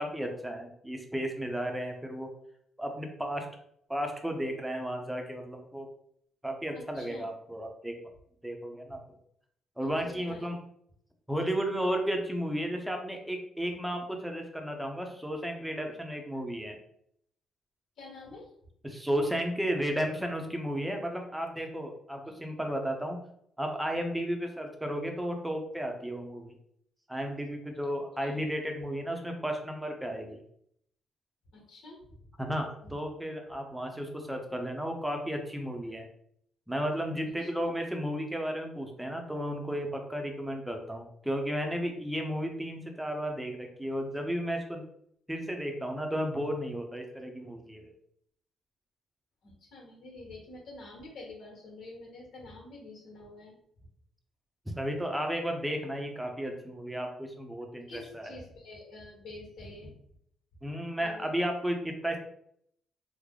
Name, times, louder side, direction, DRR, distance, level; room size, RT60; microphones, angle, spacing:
voice 1, 0.0-2.3 2.8-3.5 3.9-5.9 6.4-7.9 8.4-9.0 9.8-10.6 11.3-16.8 18.8-23.2 23.6-26.5 27.1-30.4 32.4-36.1 36.7-44.8 45.3-47.9 54.8-58.4 60.6-62.2, equal, 5° right, 3 dB, 0.7 m, -33 dB
voice 2, 6.7-7.3 8.9-9.0 9.8-10.5 18.0-18.5 28.2-28.4 31.5-32.0 32.8-33.0 37.4-37.5 49.4-53.6 57.9-60.0 61.0-61.3, left 2 dB, 65° left, -1 dB, 1.4 m, -47 dB
3.3 x 2.1 x 3.6 m, 0.70 s
cardioid pair, 90°, 0 cm